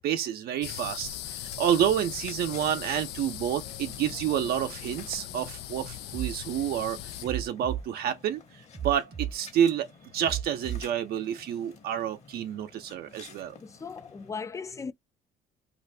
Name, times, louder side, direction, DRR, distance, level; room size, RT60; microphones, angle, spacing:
voice 1, 0.0-8.4 8.8-9.9 10.1-13.6, right 9 dB, 65° right, 0.6 m, -29 dB
sound 1, 0.6-7.2, left 12 dB, 85° left, 0.4 m, -39 dB
sound 2, 1.0-14.3, left 5 dB, 40° left, 1.1 m, -53 dB
sound 3, 6.1-6.3 7.2-7.8 8.7-9.3 10.2-10.8, right 10 dB, 30° right, 0.7 m, -33 dB
voice 2, 13.6-14.9, left 5 dB, 20° left, 0.4 m, -37 dB
2.5 x 2.5 x 3.2 m
cardioid pair, 110°, 17 cm